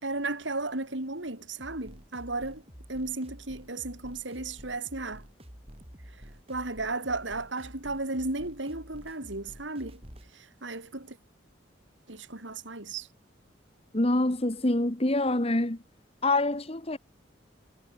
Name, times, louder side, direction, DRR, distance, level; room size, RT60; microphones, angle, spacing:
voice 1, 0.0-2.6 2.9-5.2 6.5-10.0 10.3-11.2 12.1-13.1, right 2 dB, 80° right, 4.2 m, -34 dB
sound 1, 1.6-10.3, equal, 30° right, 6.6 m, -49 dB
voice 2, 13.9-15.8 16.2-17.0, left 2 dB, 30° left, 1.6 m, -26 dB
head